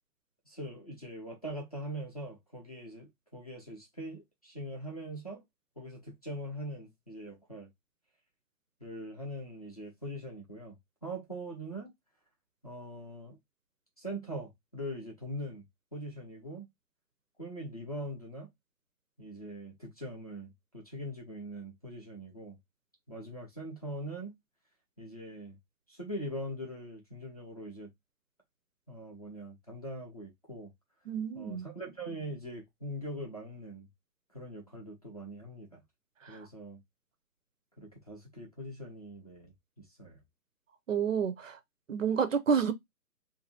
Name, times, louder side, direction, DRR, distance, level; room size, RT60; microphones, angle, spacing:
voice 1, 0.5-5.4 5.8-7.7 8.8-10.8 11.0-11.9 12.6-13.4 14.0-15.6 15.9-16.7 17.4-18.5 19.2-22.6 23.1-24.4 25.0-25.6 25.9-27.9 28.9-30.7 31.3-33.9 34.3-35.8 36.3-36.8 37.8-40.2, right 1 dB, 25° left, 0.6 m, -42 dB
voice 2, 31.1-31.7 36.2-36.5 40.9-41.6 41.9-42.7, right 6 dB, 50° right, 0.6 m, -29 dB
2.7 x 2.6 x 4.0 m
hypercardioid pair, 165°, 49 cm